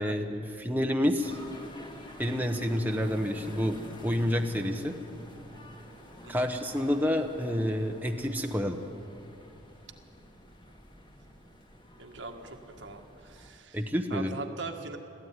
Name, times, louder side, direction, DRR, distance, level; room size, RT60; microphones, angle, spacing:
voice 1, 0.0-1.4 2.2-4.9 6.3-8.8 13.7-14.4, equal, 10° right, 3 dB, 1.0 m, -29 dB
sound 1, 1.2-13.5, equal, 25° left, 2.0 m, -49 dB
voice 2, 12.0-13.8 14.1-15.0, right 3 dB, 65° right, 3 dB, 1.7 m, -41 dB
22.0 x 15.0 x 9.7 m, 2.8 s
head